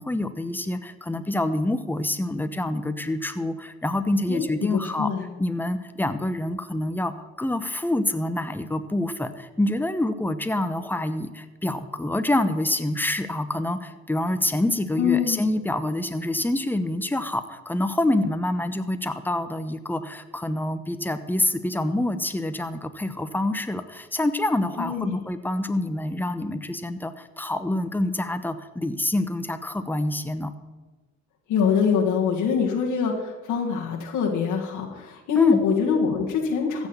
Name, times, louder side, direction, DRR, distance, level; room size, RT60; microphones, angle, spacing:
voice 1, 0.0-5.1 5.4-30.5 35.4-35.6, left 1 dB, 5° left, 10 dB, 0.9 m, -26 dB
voice 2, 4.3-5.3 15.0-15.4 24.8-25.2 31.5-36.9, left 6 dB, 90° left, -2 dB, 1.8 m, -24 dB
15.0 x 6.3 x 7.1 m, 1.2 s
cardioid pair, 90°, 30 cm